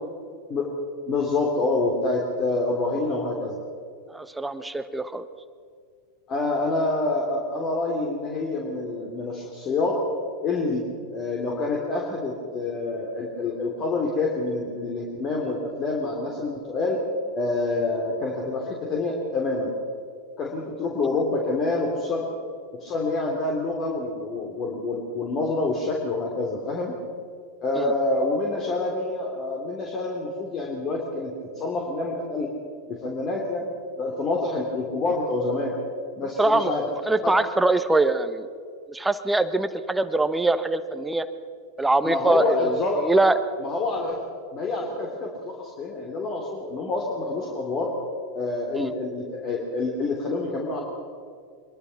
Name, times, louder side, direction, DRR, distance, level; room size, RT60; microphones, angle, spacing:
voice 1, 1.1-3.6 6.3-10.0 10.4-10.8 11.1-17.0 17.3-19.7 20.4-22.3 22.8-26.9 27.6-32.5 32.9-33.7 34.0-35.8 36.2-36.9 37.2-37.3 42.0-43.3 43.6-44.2 44.5-47.9 48.3-50.8, left 2 dB, 30° left, -1 dB, 3.3 m, -27 dB
voice 2, 4.1-5.3 27.8-27.9 36.4-36.7 37.1-38.5 38.9-41.3 41.8-43.4 48.7-48.9, right 2 dB, 5° right, 11 dB, 1.2 m, -23 dB
24.5 x 22.0 x 6.0 m, 2.2 s
figure-of-eight pair, 90°, 0 cm